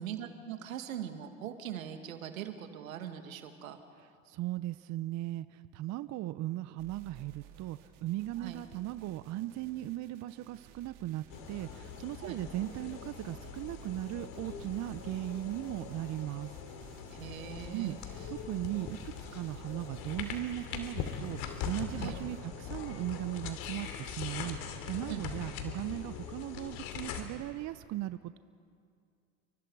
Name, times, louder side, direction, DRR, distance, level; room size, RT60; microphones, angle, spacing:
voice 1, 0.0-3.8 8.4-8.6 12.2-12.4 17.1-18.0 22.0-22.2 25.1-25.3, right 10 dB, 85° right, 7 dB, 2.0 m, -41 dB
voice 2, 4.3-16.6 17.2-17.3 17.7-18.0 18.3-28.4, right 15 dB, 45° right, 14 dB, 0.7 m, -38 dB
sound 1, 6.8-22.4, right 9 dB, 65° right, 3.0 m, -57 dB
sound 2, 11.3-27.2, left 7 dB, 60° left, 2.9 m, -42 dB
29.5 x 24.0 x 4.7 m, 2.3 s
hypercardioid pair, 90°, 40 cm